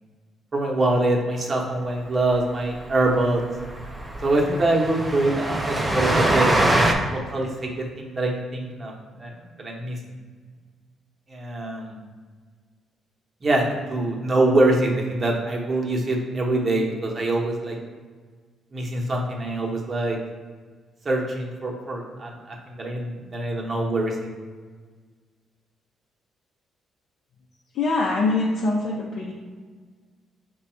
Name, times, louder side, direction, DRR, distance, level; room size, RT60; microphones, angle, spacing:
voice 1, 0.5-3.4 4.2-8.9 9.2-9.3 9.6-10.0 11.3-12.0 13.4-17.8 18.7-20.2 21.0-24.2, right 2 dB, 35° right, -1 dB, 0.9 m, -24 dB
Train, 2.4-2.5 2.7-2.9 3.1-3.2 3.6-6.9, right 1 dB, 15° right, 0.5 m, -23 dB
voice 2, 27.7-29.3, left 3 dB, 70° left, -4 dB, 0.6 m, -23 dB
5.1 x 2.3 x 4.3 m, 1.5 s
cardioid pair, 90°, 0 cm